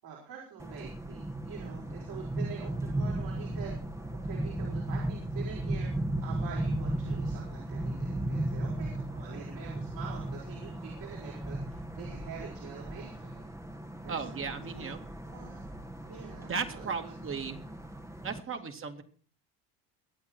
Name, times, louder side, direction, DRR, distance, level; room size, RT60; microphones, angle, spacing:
voice 1, 0.0-3.7 4.2-5.9 6.2-13.5 14.0-14.9 15.3-15.7 16.1-17.1 18.3-18.6, right 7 dB, 60° right, -3 dB, 5.6 m, -46 dB
sound 1, 0.6-18.4, right 1 dB, 5° right, 1.3 m, -36 dB
voice 2, 14.1-15.0 16.5-17.6 18.2-19.0, right 5 dB, 30° right, 6 dB, 2.3 m, -36 dB
23.0 x 8.7 x 4.6 m, 0.41 s
supercardioid pair, 110°, 39 cm